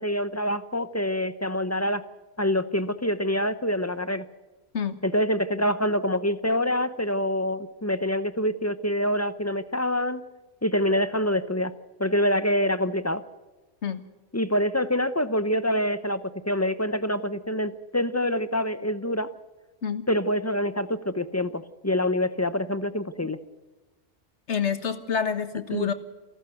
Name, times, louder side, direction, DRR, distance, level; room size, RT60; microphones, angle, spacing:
voice 1, 0.0-2.0 2.4-4.2 5.0-10.2 10.6-11.7 12.0-13.2 14.3-16.2 16.5-19.3 20.1-23.4 25.7-25.9, left 1 dB, 15° left, 13 dB, 0.7 m, -26 dB
voice 2, 24.5-25.9, left 7 dB, 70° left, 11 dB, 1.7 m, -27 dB
28.5 x 12.0 x 8.0 m, 1.2 s
omnidirectional pair, 1.2 m